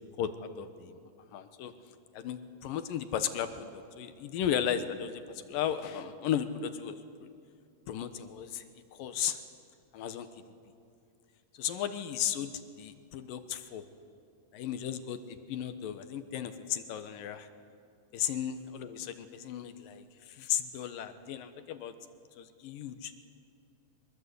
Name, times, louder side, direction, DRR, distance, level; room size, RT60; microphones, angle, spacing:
voice 1, 0.2-1.0 1.3-1.7 2.1-7.0 7.9-8.6 8.9-9.4 9.9-10.3 11.6-13.8 14.5-17.5 18.1-21.9 22.4-23.1, left 9 dB, 75° left, 10 dB, 2.6 m, -35 dB
25.0 x 22.0 x 8.3 m, 2.4 s
omnidirectional pair, 4.3 m